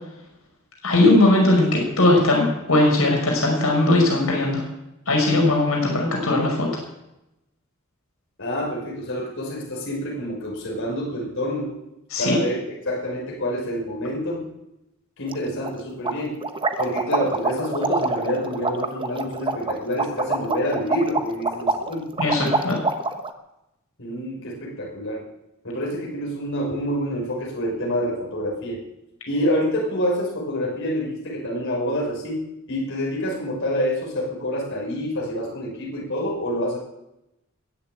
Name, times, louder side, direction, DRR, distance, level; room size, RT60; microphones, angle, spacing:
voice 1, 0.8-4.6 5.1-6.8 12.1-12.4 22.2-22.8, left 2 dB, 90° left, 0 dB, 5.4 m, -19 dB
voice 2, 8.4-11.7 12.2-14.5 15.2-16.5 16.8-22.2 24.0-25.2 25.6-28.8 29.3-36.8, equal, 65° left, -2 dB, 5.6 m, -27 dB
sound 1, 15.3-15.4 15.6-15.7 16.1-23.3, right 3 dB, 25° right, 1.1 m, -25 dB
21.0 x 7.2 x 8.9 m, 0.90 s
head